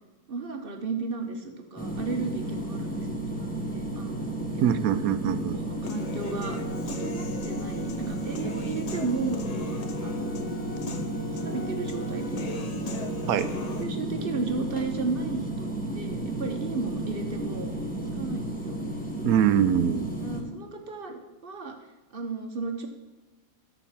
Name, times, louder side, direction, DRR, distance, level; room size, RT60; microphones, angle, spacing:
voice 1, 0.3-3.1 3.4-4.3 5.5-6.6 6.9-9.5 10.0-10.5 11.4-12.7 13.2-15.7 15.9-17.7 18.1-18.8 20.2-21.7 22.1-22.9, right 4 dB, 45° right, 4 dB, 1.1 m, -34 dB
sound 1, 1.8-20.4, right 1 dB, 5° left, 1.1 m, -33 dB
voice 2, 4.6-5.6 13.3-13.5 19.2-20.1, right 9 dB, 80° right, 13 dB, 1.1 m, -23 dB
Human voice / Piano, 5.8-13.8, left 4 dB, 45° left, 0.5 m, -39 dB
13.0 x 4.6 x 5.8 m, 1.1 s
omnidirectional pair, 1.5 m